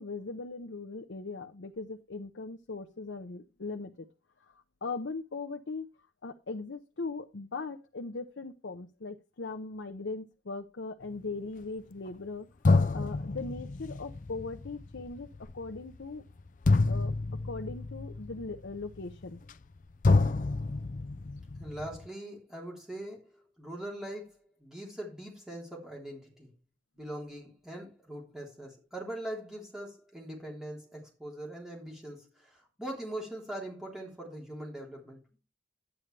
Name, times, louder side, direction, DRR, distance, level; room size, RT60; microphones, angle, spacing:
voice 1, 0.0-3.9 4.5-5.9 6.2-12.5 12.9-15.3 15.5-16.2 16.8-17.1 17.4-19.4, left 3 dB, 90° left, 0.8 m, -39 dB
sound 1, 12.1-12.2 12.6-19.8 20.0-22.1, left 3 dB, 45° left, 0.4 m, -29 dB
voice 2, 21.6-26.5 27.0-35.4, right 1 dB, 5° right, 3.4 m, -42 dB
11.0 x 9.2 x 3.3 m
head